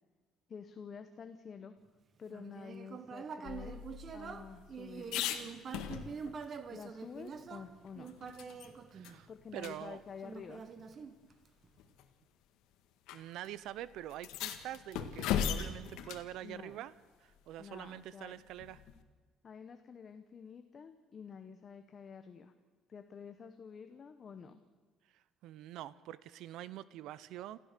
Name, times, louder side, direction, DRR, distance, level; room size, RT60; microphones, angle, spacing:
voice 1, 0.5-1.7 2.2-3.8 4.1-5.3 6.7-8.2 9.3-10.6 16.4-16.8 17.6-18.3 19.4-22.5 22.9-24.6, left 6 dB, 30° left, 8 dB, 0.9 m, -49 dB
Human voice, 2.3-9.6 10.2-11.7, right 6 dB, 30° right, 1.1 m, -46 dB
sound 1, 3.5-6.4 6.8-6.9 7.3-8.7 9.0-9.2 9.6-9.7 10.8-10.9 11.8-12.1 13.1-13.2 13.4-13.5 14.1-16.3 18.6-19.0, left 9 dB, 80° left, 1.7 m, -38 dB
voice 2, 8.9-10.0 13.1-16.9 17.2-18.8 25.1-27.6, right 13 dB, 65° right, 18 dB, 0.6 m, -45 dB
28.0 x 15.0 x 6.7 m, 1.5 s
cardioid pair, 170°, 0 cm